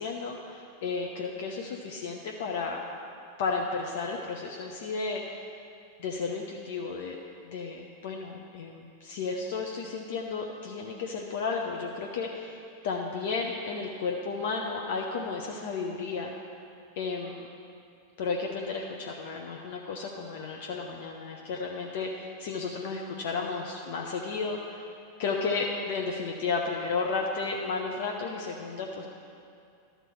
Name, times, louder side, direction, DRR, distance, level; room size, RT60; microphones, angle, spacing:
voice 1, 0.0-2.8 3.4-5.5 6.0-7.2 7.4-16.3 17.0-17.3 18.2-24.9 25.2-29.0, left 4 dB, 55° left, 0 dB, 0.7 m, -33 dB
12.5 x 4.4 x 6.9 m, 2.5 s
figure-of-eight pair, 90°, 0 cm